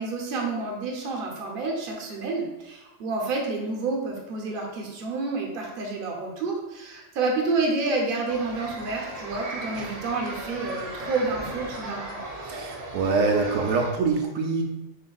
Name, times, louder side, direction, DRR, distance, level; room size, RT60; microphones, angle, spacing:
voice 1, 0.0-12.2, right 3 dB, 50° right, 0 dB, 0.9 m, -29 dB
sound 1, 8.3-13.9, right 1 dB, 65° right, 0.3 m, -37 dB
voice 2, 12.4-14.6, right 4 dB, 85° right, 1 dB, 1.0 m, -24 dB
6.8 x 2.6 x 2.3 m, 1.0 s
omnidirectional pair, 1.4 m